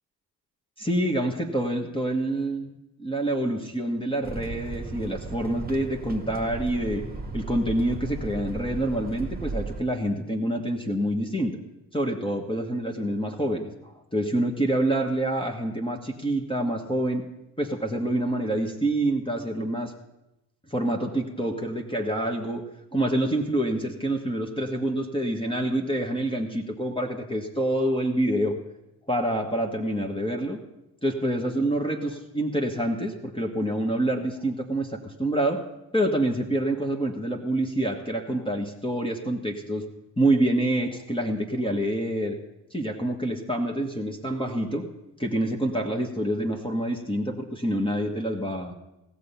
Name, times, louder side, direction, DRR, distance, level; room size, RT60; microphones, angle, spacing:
voice 1, 0.8-2.7 3.0-11.6 11.9-17.2 17.6-19.9 20.7-22.6 22.9-28.6 29.1-30.6 31.0-35.6 35.9-39.9 40.2-42.4 42.7-44.9 45.2-48.7, right 1 dB, 10° left, 2 dB, 1.6 m, -27 dB
sound 1, 4.2-9.8, right 3 dB, 20° right, 1.5 m, -35 dB
16.5 x 7.0 x 5.7 m, 0.94 s
hypercardioid pair, 40°, 49 cm